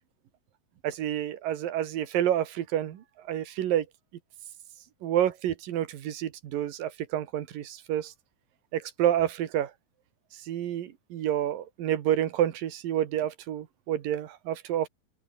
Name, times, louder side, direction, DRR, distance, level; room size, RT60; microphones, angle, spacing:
voice 1, 0.8-3.9 5.0-8.1 8.7-9.7 10.5-14.9, right 11 dB, 70° right, 3.3 m, -29 dB
open air
omnidirectional pair, 4.2 m